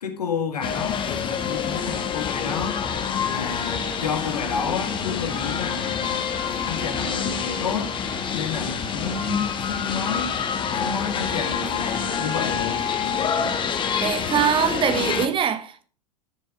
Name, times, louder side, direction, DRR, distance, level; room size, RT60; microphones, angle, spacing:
voice 1, 0.0-2.8 3.3-6.1 6.7-8.0 8.3-10.3 10.8-12.8, left 6 dB, 75° left, 2.0 m, -30 dB
sound 1, 0.6-15.3, left 7 dB, 25° left, 1.4 m, -27 dB
sound 2, 2.8-14.0, right 6 dB, 75° right, 3.3 m, -45 dB
voice 2, 14.0-15.9, right 8 dB, 25° right, 1.1 m, -23 dB
10.0 x 7.0 x 5.1 m
figure-of-eight pair, 95°, 20 cm